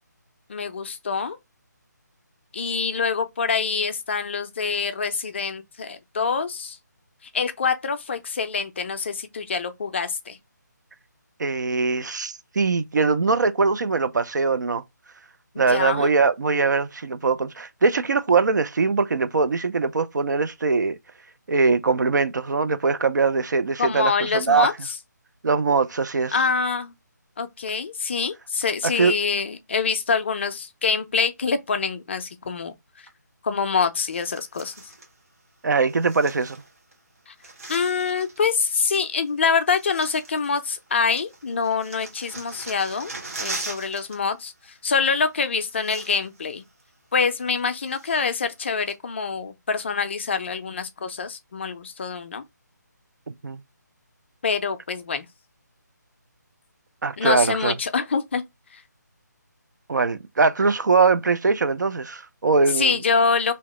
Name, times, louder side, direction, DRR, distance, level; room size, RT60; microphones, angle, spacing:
voice 1, 0.5-1.4 2.5-6.8 7.3-10.4 15.5-16.1 23.8-24.9 26.3-26.9 27.4-33.1 33.4-34.7 37.3-37.4 37.7-43.1 43.4-46.6 47.1-52.4 54.4-55.2 57.2-58.4 58.7-58.8 62.7-63.5, left 5 dB, 40° left, 0.4 m, -25 dB
voice 2, 11.4-14.8 15.6-21.0 21.5-24.7 25.4-26.4 29.0-29.1 35.6-36.6 53.3-53.6 57.0-57.7 59.9-63.0, right 4 dB, 70° right, 0.4 m, -22 dB
sound 1, 34.0-35.1 35.9-36.9 37.2-38.4 39.3-39.4 39.7-40.9 41.2-44.2 44.4-44.6 45.4-45.5 45.7-46.4 46.8-46.9 47.4-48.4 48.9-49.0, right 3 dB, 45° right, 1.1 m, -39 dB
2.8 x 2.0 x 2.9 m
figure-of-eight pair, 155°, 10 cm